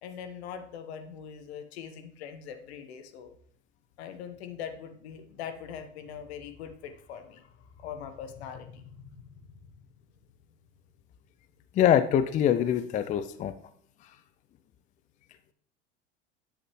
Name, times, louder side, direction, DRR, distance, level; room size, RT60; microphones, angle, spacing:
voice 1, 0.0-3.3 4.0-9.4, left 8 dB, 60° left, 7 dB, 1.2 m, -42 dB
voice 2, 11.7-13.5, left 10 dB, 20° left, 12 dB, 0.4 m, -24 dB
10.0 x 7.7 x 3.1 m, 0.63 s
figure-of-eight pair, 70°, 35 cm